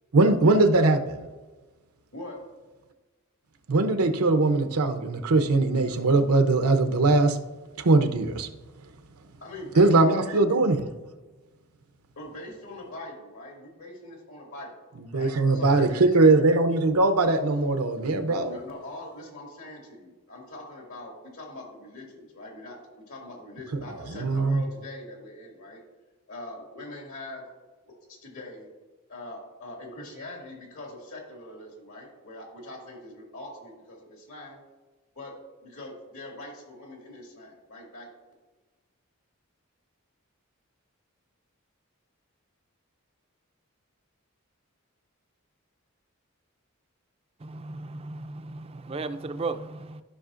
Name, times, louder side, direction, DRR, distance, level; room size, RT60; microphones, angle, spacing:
voice 1, 0.1-1.1 3.7-7.4 7.8-8.5 9.8-10.8 15.0-18.6 24.1-24.6, right 3 dB, 85° right, 0.7 m, -21 dB
voice 2, 9.4-10.4 12.2-14.7 15.1-16.3 18.2-22.8 23.1-25.8 26.3-27.4 28.1-28.7 29.1-34.6 35.1-35.3 35.6-38.1, left 1 dB, 75° left, 2.1 m, -42 dB
voice 3, 47.4-50.0, right 3 dB, 25° right, 0.3 m, -35 dB
13.5 x 5.6 x 2.5 m
head